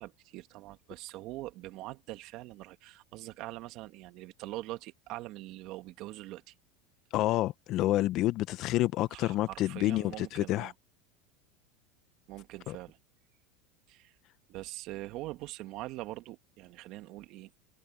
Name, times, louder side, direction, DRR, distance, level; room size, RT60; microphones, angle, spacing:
voice 1, 0.0-6.5 9.1-10.7 12.3-13.0 13.9-14.2 14.5-17.5, right 18 dB, 55° right, 1.8 m, -43 dB
voice 2, 7.1-10.7 12.7-12.8, left 16 dB, 50° left, 0.9 m, -29 dB
hypercardioid pair, 100°, 0 cm